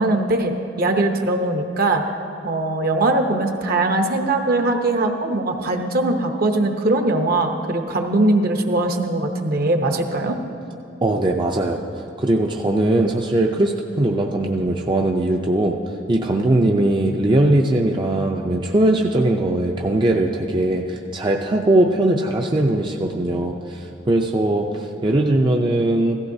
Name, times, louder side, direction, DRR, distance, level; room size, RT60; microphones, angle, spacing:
voice 1, 0.0-2.0 2.4-10.4, right 2 dB, 55° right, 5 dB, 0.8 m, -21 dB
voice 2, 11.0-11.8 12.2-15.8 16.1-26.2, right 1 dB, 25° right, 1 dB, 0.5 m, -20 dB
16.0 x 14.5 x 2.7 m, 2.8 s
head